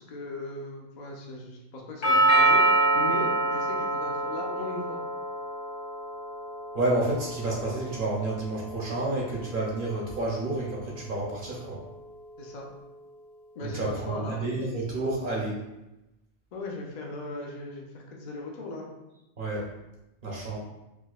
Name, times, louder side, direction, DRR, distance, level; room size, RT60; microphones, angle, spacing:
voice 1, 0.0-2.7 2.9-5.0 12.4-12.7 13.5-14.4 16.5-18.9, left 2 dB, 50° left, -1 dB, 0.5 m, -38 dB
Doorbell, 2.0-10.1, right 2 dB, 75° left, 1.1 m, -27 dB
voice 2, 6.7-11.8 13.6-15.6 19.4-19.7 20.2-20.6, right 2 dB, 55° right, -3 dB, 0.8 m, -30 dB
4.8 x 2.1 x 2.3 m, 0.96 s
omnidirectional pair, 1.2 m